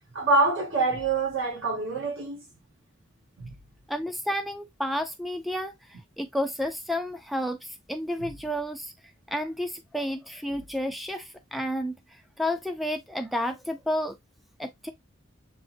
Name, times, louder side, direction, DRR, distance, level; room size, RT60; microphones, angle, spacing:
voice 1, 0.1-2.4 3.4-3.5 8.2-8.3, right 3 dB, 80° right, 2.2 m, -25 dB
voice 2, 3.9-8.9 9.3-14.2 14.6-14.9, equal, ahead, 0.4 m, -31 dB
7.6 x 2.6 x 2.6 m
head